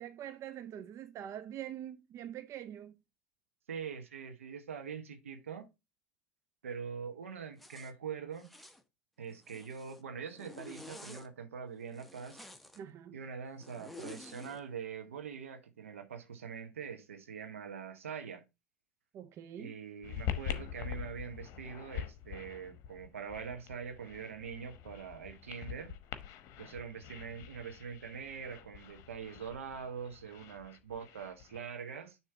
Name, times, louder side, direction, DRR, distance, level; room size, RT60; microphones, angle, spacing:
voice 1, 0.0-2.9 12.8-13.2 19.1-19.8, right 10 dB, 45° right, 0.5 m, -44 dB
voice 2, 3.7-5.7 6.6-8.5 9.2-12.4 13.1-18.4 19.6-26.0 26.6-32.2, right 6 dB, 85° right, 1.0 m, -43 dB
Zipper (clothing), 7.6-7.9 8.4-8.8 9.3-10.0 10.3-11.3 11.9-12.8 13.6-14.6, left 2 dB, ahead, 1.0 m, -50 dB
sound 1, 20.0-31.6, left 9 dB, 55° left, 0.9 m, -44 dB
6.7 x 3.0 x 5.7 m
hypercardioid pair, 75°, 7 cm